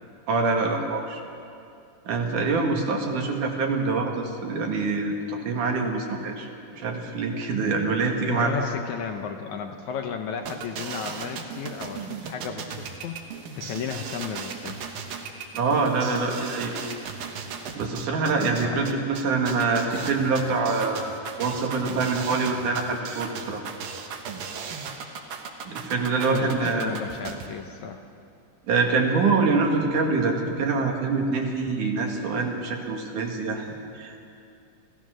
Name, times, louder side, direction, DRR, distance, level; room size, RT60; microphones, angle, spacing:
voice 1, 0.3-1.2 2.1-6.5 6.7-8.5 15.5-16.8 17.8-23.6 25.7-26.9 28.7-33.7 33.9-34.2, right 4 dB, 65° right, 2 dB, 3.2 m, -25 dB
voice 2, 8.3-14.8 18.4-18.8 26.3-28.0, left 6 dB, 70° left, 5 dB, 2.0 m, -34 dB
sound 1, 10.5-27.5, right 6 dB, 80° right, 3.1 m, -36 dB
27.0 x 16.0 x 6.3 m, 2.6 s
omnidirectional pair, 4.0 m